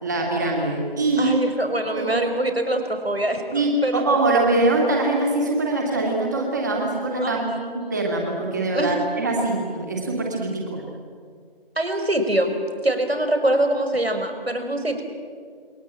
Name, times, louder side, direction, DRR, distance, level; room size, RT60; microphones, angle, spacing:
voice 1, 0.0-1.4 1.9-2.2 3.5-7.5 7.9-10.8, right 2 dB, 20° right, 0 dB, 2.3 m, -23 dB
voice 2, 1.2-4.0 7.2-8.1 8.7-8.9 11.8-12.6 12.8-15.0, right 1 dB, 85° right, 7 dB, 5.3 m, -24 dB
28.0 x 22.0 x 8.7 m, 2.1 s
figure-of-eight pair, 170°, 30 cm